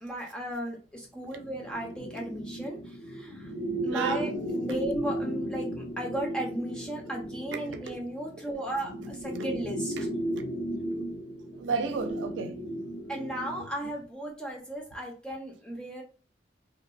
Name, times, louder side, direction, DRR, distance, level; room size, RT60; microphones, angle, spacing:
voice 1, 0.0-3.5 3.8-10.1 13.1-16.0, right 1 dB, 5° left, 0.6 m, -35 dB
sound 1, 1.3-13.7, right 1 dB, 40° left, 0.7 m, -35 dB
voice 2, 3.9-4.3 7.5-8.0 10.0-10.1 11.5-12.6, right 5 dB, 85° right, 0.4 m, -32 dB
2.8 x 2.3 x 2.3 m
head